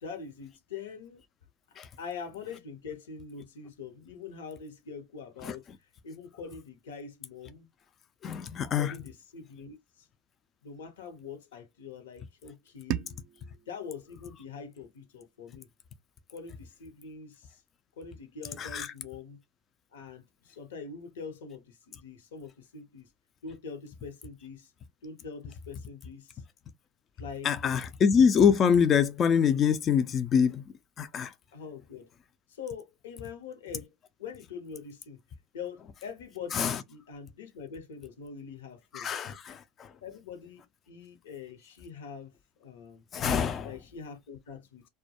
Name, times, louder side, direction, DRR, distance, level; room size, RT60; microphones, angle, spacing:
voice 1, 0.0-1.2 2.0-5.7 6.0-7.7 8.7-10.1 10.6-13.1 13.7-15.7 16.3-17.6 18.0-19.4 19.9-23.1 23.4-24.7 25.0-26.4 27.2-27.5 31.5-32.1 32.5-33.9 34.2-35.2 35.5-39.3 40.0-43.0 43.6-44.9, left 5 dB, 80° left, 0.9 m, -44 dB
voice 2, 8.2-8.9 18.6-18.9 27.4-30.6 31.0-31.3 36.5-36.8 38.9-39.9 43.1-43.7, left 7 dB, 40° left, 0.3 m, -25 dB
sound 1, 12.9-15.8, right 9 dB, 55° right, 0.3 m, -40 dB
2.2 x 2.1 x 2.8 m
hypercardioid pair, 90°, 0 cm